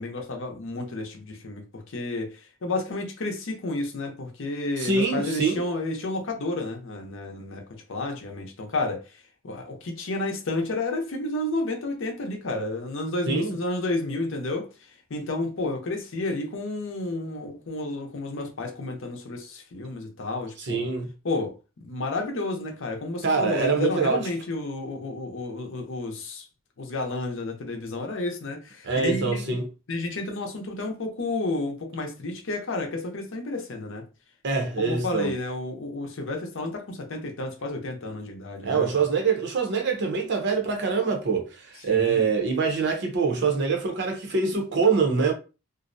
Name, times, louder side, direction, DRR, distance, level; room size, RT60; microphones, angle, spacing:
voice 1, 0.0-14.7 15.1-20.9 21.2-26.5 26.8-29.6 29.9-34.0 34.8-39.0 41.9-42.3, left 2 dB, 65° left, 0.6 m, -31 dB
voice 2, 4.8-5.6 13.3-13.5 20.6-21.1 23.2-24.2 28.8-29.7 34.4-35.3 38.6-45.3, right 5 dB, 55° right, 0.6 m, -24 dB
2.5 x 2.0 x 2.6 m
head